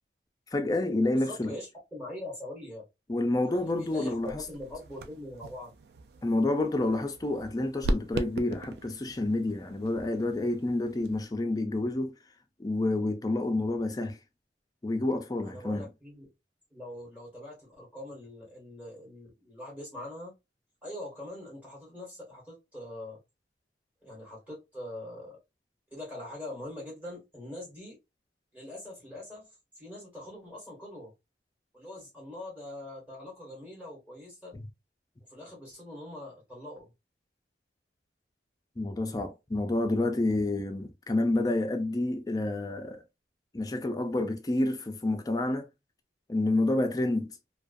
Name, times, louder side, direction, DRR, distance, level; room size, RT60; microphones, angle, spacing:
voice 1, 0.5-1.5 3.1-4.3 6.2-12.1 12.6-14.2 14.8-15.8 38.8-43.0 43.5-45.7 46.3-47.3, left 2 dB, 20° left, 0.4 m, -29 dB
voice 2, 1.1-2.9 3.4-5.7 15.4-16.3 16.7-20.3 20.8-23.2 24.0-25.4 25.9-28.0 28.5-29.5 29.8-31.1 31.7-34.6 35.3-36.9, left 1 dB, 10° right, 1.2 m, -43 dB
sound 1, 3.5-11.3, right 2 dB, 65° right, 0.3 m, -39 dB
2.3 x 2.3 x 2.4 m
head